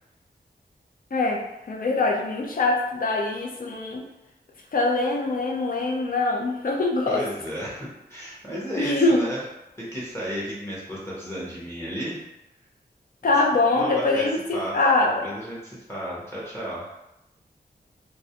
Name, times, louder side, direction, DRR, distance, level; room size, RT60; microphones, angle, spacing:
voice 1, 1.1-1.4 1.7-4.0 4.7-7.2 8.5-9.2 13.2-15.3, left 2 dB, 55° left, 0 dB, 0.5 m, -23 dB
voice 2, 7.1-9.4 9.8-12.2 13.8-14.8 15.2-16.9, equal, 15° left, -7 dB, 0.8 m, -33 dB
2.3 x 2.1 x 2.8 m, 0.92 s
wide cardioid pair, 80°, 18 cm